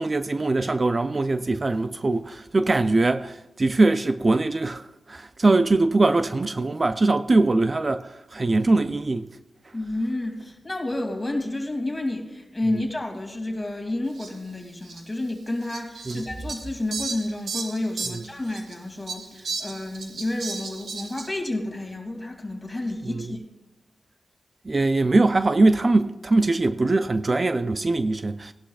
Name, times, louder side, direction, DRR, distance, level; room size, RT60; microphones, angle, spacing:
voice 1, 0.0-9.3 16.1-16.2 18.1-18.2 23.1-23.3 24.7-28.5, right 2 dB, 40° right, 0.4 m, -22 dB
voice 2, 9.7-23.4, left 1 dB, 20° left, 2.5 m, -30 dB
Fowl, 14.2-14.3 14.8-15.0 15.7-18.7 19.1-21.3, right 4 dB, 80° right, 1.4 m, -34 dB
18.0 x 11.0 x 2.4 m
cardioid pair, 60°, 0 cm